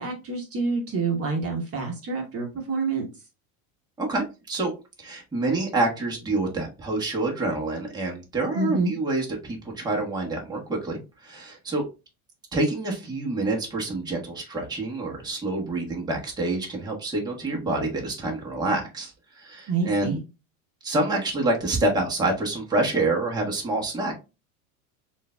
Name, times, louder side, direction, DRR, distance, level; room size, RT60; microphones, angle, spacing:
voice 1, 0.0-3.1 8.5-8.9 19.7-20.2, right 4 dB, 35° right, 2 dB, 1.2 m, -27 dB
voice 2, 4.0-4.7 5.0-11.8 12.5-20.2 20.8-24.2, right 2 dB, 10° right, -1 dB, 1.2 m, -27 dB
6.4 x 2.6 x 2.2 m, 0.28 s
supercardioid pair, 125°, 43 cm